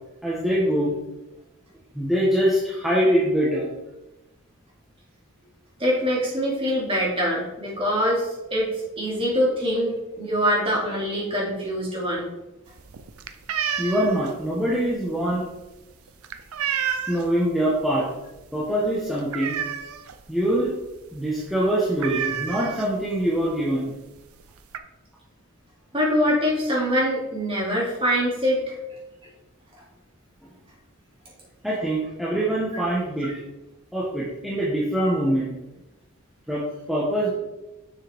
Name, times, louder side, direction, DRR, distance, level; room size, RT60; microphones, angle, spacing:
voice 1, 0.2-0.9 1.9-3.7 13.8-15.5 17.1-18.1 18.5-19.6 20.3-20.7 21.1-23.9 31.6-33.3 33.9-35.5 36.5-37.3, right 1 dB, ahead, -8 dB, 1.2 m, -23 dB
voice 2, 5.8-12.3 25.9-28.6, equal, 25° right, -5 dB, 2.5 m, -24 dB
sound 1, 12.7-17.4 17.8-18.1 18.4-18.5 18.8-20.2 20.6-20.7 21.0-21.2 21.4-21.5 22.0-23.2 24.0-24.1 24.4-24.8, right 8 dB, 85° right, 0.6 m, -30 dB
7.0 x 6.9 x 3.5 m, 1.0 s
head